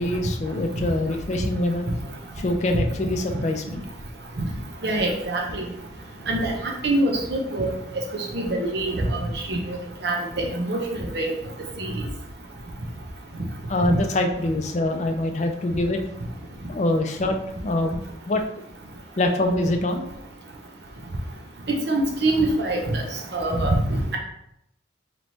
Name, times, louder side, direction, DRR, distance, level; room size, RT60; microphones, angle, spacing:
voice 1, 0.0-1.9 2.4-3.8 11.8-11.9 13.7-16.0 16.7-18.0 18.3-18.4 19.2-20.1, left 1 dB, 35° left, 3 dB, 0.4 m, -24 dB
voice 2, 4.8-5.6 6.3-7.7 8.3-9.8 10.0-10.8 11.1-11.3 11.8-11.9 21.9-23.0 23.3-24.2, right 1 dB, 60° right, 0 dB, 0.7 m, -24 dB
3.3 x 3.0 x 4.0 m, 0.78 s
head